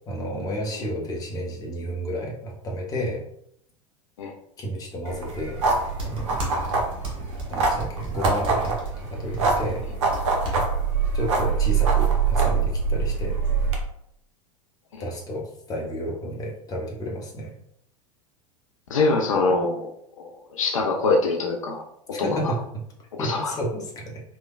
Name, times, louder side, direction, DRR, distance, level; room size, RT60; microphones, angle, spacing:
voice 1, 0.1-3.2 4.6-5.6 6.0-6.8 7.5-9.8 11.1-13.4 15.0-17.5 22.1-22.6 23.2-24.2, equal, 20° left, -1 dB, 0.7 m, -31 dB
sound 1, 5.0-13.8, right 5 dB, 60° right, 0.6 m, -24 dB
sound 2, 5.9-11.9, right 2 dB, 30° right, 0.9 m, -36 dB
voice 2, 18.9-19.9 20.2-21.8 22.2-22.5 23.2-23.6, left 3 dB, 70° left, 1 dB, 0.4 m, -24 dB
3.2 x 2.1 x 2.3 m, 0.72 s
figure-of-eight pair, 85°, 18 cm